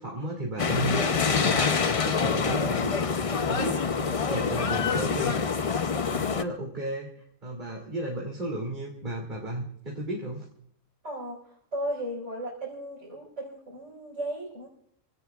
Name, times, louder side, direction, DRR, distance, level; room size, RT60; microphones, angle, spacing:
voice 1, 0.0-5.5 5.8-10.5, right 1 dB, 35° right, -2 dB, 2.7 m, -34 dB
sound 1, 0.6-6.4, left 5 dB, 55° left, 0.3 m, -26 dB
voice 2, 11.0-14.7, right 1 dB, 55° right, -5 dB, 5.0 m, -35 dB
29.5 x 17.5 x 2.4 m, 0.66 s
omnidirectional pair, 1.5 m